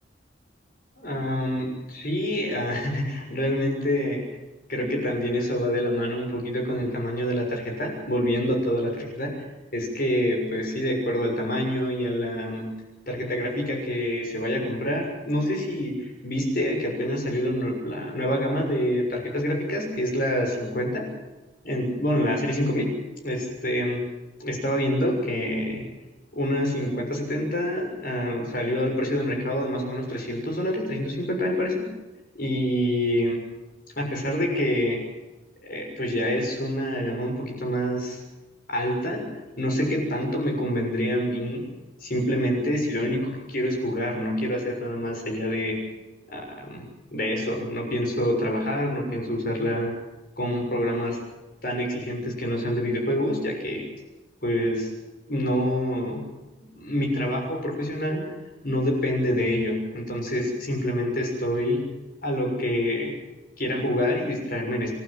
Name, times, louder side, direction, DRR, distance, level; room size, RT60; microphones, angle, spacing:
voice 1, 1.0-4.2 4.7-9.4 9.7-12.7 13.1-21.1 21.6-22.9 23.2-24.0 24.4-25.8 26.3-31.9 32.3-33.4 34.0-35.0 35.6-38.2 38.7-41.6 42.0-45.8 46.3-46.8 47.1-49.9 50.4-51.2 51.6-53.8 54.4-54.9 55.3-56.2 56.6-58.2 58.6-61.8 62.2-63.1 63.6-64.9, equal, 50° left, 1 dB, 6.7 m, -26 dB
29.5 x 12.0 x 9.1 m, 1.1 s
head